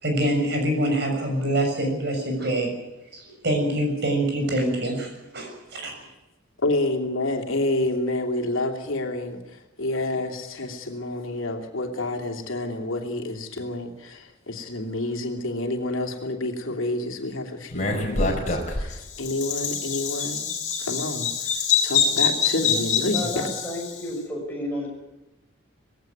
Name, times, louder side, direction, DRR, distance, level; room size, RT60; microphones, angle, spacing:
voice 1, 0.0-2.7 3.1-6.0, right 1 dB, 55° right, 3 dB, 6.5 m, -25 dB
voice 2, 6.6-20.5 20.8-21.3 21.8-23.6, left 2 dB, 80° left, 3 dB, 3.0 m, -29 dB
Bird vocalization bird call bird song, 17.7-24.0, left 6 dB, 35° left, 4.7 m, -25 dB
voice 3, 23.1-24.9, left 1 dB, 10° left, -1 dB, 6.6 m, -31 dB
19.5 x 17.0 x 9.4 m, 1.0 s
head